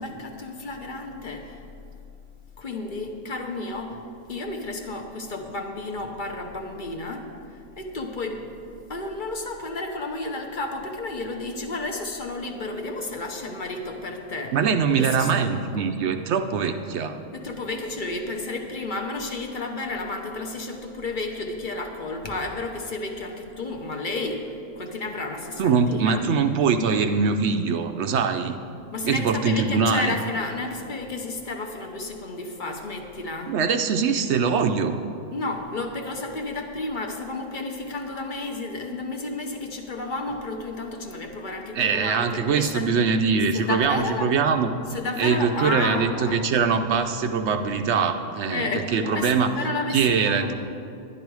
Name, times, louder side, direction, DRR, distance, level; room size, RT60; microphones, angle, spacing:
voice 1, 0.0-1.6 2.6-4.0 4.3-7.3 7.8-8.4 8.9-14.6 15.0-15.9 17.3-24.5 24.8-26.2 28.9-33.5 35.3-42.9 43.5-44.4 44.9-46.6 48.5-50.5, left 2 dB, 45° left, 3 dB, 0.9 m, -32 dB
voice 2, 14.5-17.2 25.6-28.6 29.0-30.2 33.4-35.0 41.7-44.7 45.2-49.5 49.9-50.5, right 5 dB, 70° right, 7 dB, 0.8 m, -23 dB
11.0 x 10.5 x 4.7 m, 2.6 s
omnidirectional pair, 1.3 m